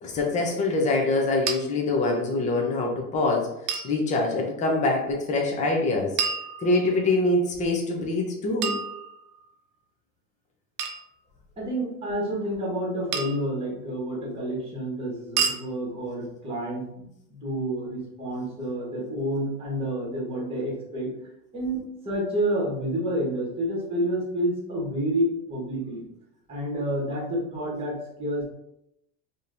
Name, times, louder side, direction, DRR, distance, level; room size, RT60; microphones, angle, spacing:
voice 1, 0.0-3.5 3.8-6.2 6.6-8.8, left 2 dB, 15° left, 0 dB, 0.5 m, -24 dB
sound 1, 1.5-1.6 3.7-3.9 6.2-7.1 8.6-9.5 10.8-11.1 13.1-13.5 15.4-15.6, right 6 dB, 80° right, 0.8 m, -29 dB
voice 2, 11.6-21.1 21.5-26.0 26.5-28.4, right 1 dB, 10° right, -3 dB, 1.2 m, -29 dB
5.0 x 2.9 x 2.5 m, 0.81 s
supercardioid pair, 140°, 49 cm